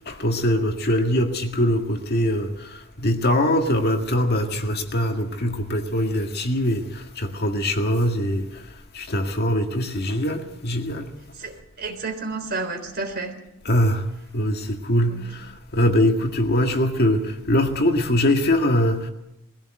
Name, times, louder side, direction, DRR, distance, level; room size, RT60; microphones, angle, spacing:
voice 1, 0.1-8.5 8.9-11.1 13.7-14.0 14.3-19.1, left 1 dB, 45° left, 1.9 m, -22 dB
voice 2, 11.4-13.4 15.1-15.3, right 3 dB, 45° right, 3.6 m, -31 dB
21.0 x 16.0 x 7.8 m
head